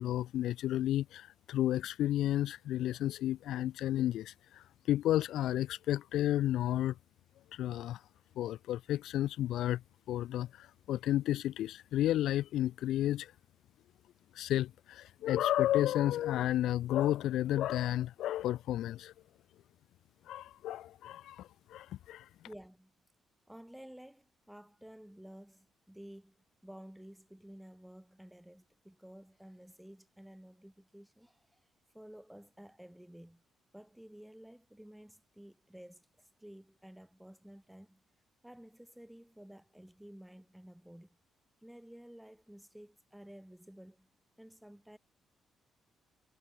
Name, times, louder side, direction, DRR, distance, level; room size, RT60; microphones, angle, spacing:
voice 1, 0.0-6.9 7.5-8.0 8.4-9.8 10.1-13.3 14.3-19.1 20.3-22.3, left 13 dB, 80° left, 0.5 m, -32 dB
voice 2, 22.4-22.9 23.5-31.6 31.9-33.4 33.7-38.0 38.4-41.2 41.6-44.1 44.4-45.0, equal, 5° right, 7.9 m, -53 dB
cardioid pair, 90°, 0 cm